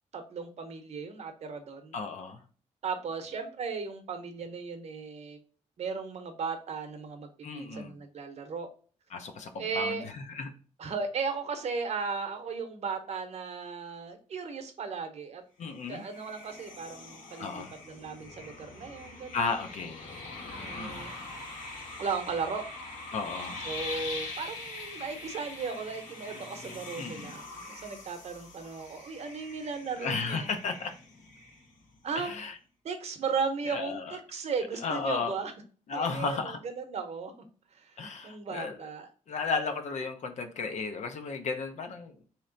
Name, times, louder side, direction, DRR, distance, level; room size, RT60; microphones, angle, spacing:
voice 1, 0.1-2.0 2.8-5.4 5.8-8.7 9.6-10.0 10.8-15.4 15.9-19.6 20.5-21.2 22.0-22.7 23.6-30.5 32.0-32.3 32.8-35.5 35.9-37.3 37.7-39.1, right 5 dB, 60° right, 7 dB, 0.7 m, -36 dB
voice 2, 1.9-2.4 7.4-7.9 9.1-10.5 15.6-16.0 17.4-17.7 19.3-20.0 20.7-21.1 23.1-23.7 27.0-27.3 30.0-30.9 32.2-32.5 33.7-34.2 34.8-35.3 35.9-36.6 38.0-38.8 39.3-42.3, left 4 dB, 65° left, 6 dB, 0.7 m, -34 dB
sound 1, 15.7-32.0, left 3 dB, 85° left, 1.3 m, -43 dB
3.2 x 2.9 x 3.8 m, 0.40 s
wide cardioid pair, 145°, 13 cm